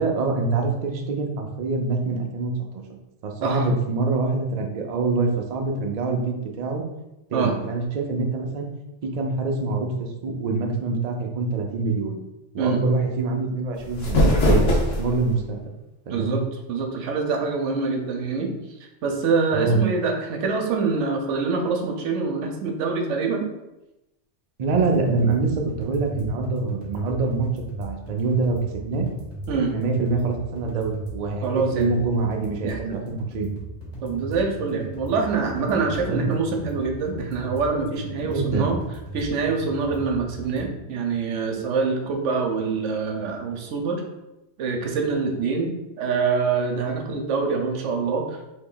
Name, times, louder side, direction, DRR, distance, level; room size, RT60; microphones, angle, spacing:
voice 1, 0.0-2.8 3.2-6.8 7.3-8.7 9.0-12.2 12.5-15.6 16.1-16.4 19.5-19.8 24.6-27.5 27.8-28.6 28.8-29.1 29.7-31.4 31.7-33.5 36.0-36.3 38.2-38.8, right 3 dB, 55° right, 2 dB, 0.4 m, -25 dB
sound 1, 13.7-15.4, left 1 dB, 85° left, 1.2 m, -20 dB
voice 2, 16.1-16.4 16.7-18.5 19.0-23.5 29.5-29.7 31.4-31.9 32.6-33.0 34.0-38.8 39.1-44.0 44.6-48.4, right 4 dB, 80° right, 3 dB, 0.9 m, -25 dB
sound 2, 24.7-40.7, right 1 dB, 40° left, 1.3 m, -37 dB
3.0 x 2.7 x 3.7 m, 0.95 s
omnidirectional pair, 1.2 m